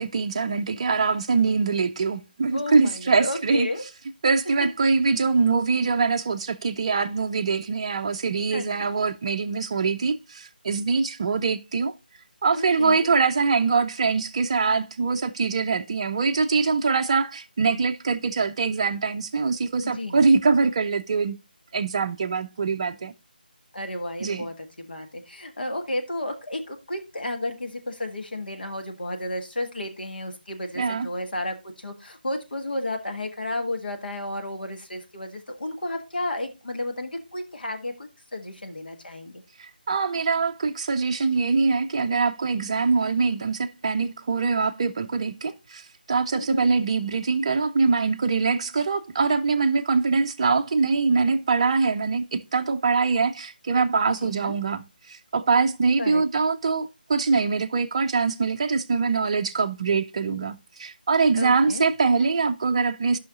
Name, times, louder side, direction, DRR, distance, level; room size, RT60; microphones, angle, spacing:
voice 1, 0.0-3.7 4.2-11.9 12.4-21.4 21.7-23.1 24.2-24.5 30.8-31.1 39.6-45.8 46.1-63.2, right 4 dB, 35° right, 0.5 m, -23 dB
voice 2, 2.5-3.8 8.5-8.9 12.5-13.1 19.8-20.4 23.7-39.4 46.3-46.7 54.1-54.5 56.0-56.2 61.4-61.8, left 1 dB, 70° left, 1.5 m, -32 dB
14.0 x 5.6 x 2.4 m
figure-of-eight pair, 155°, 5 cm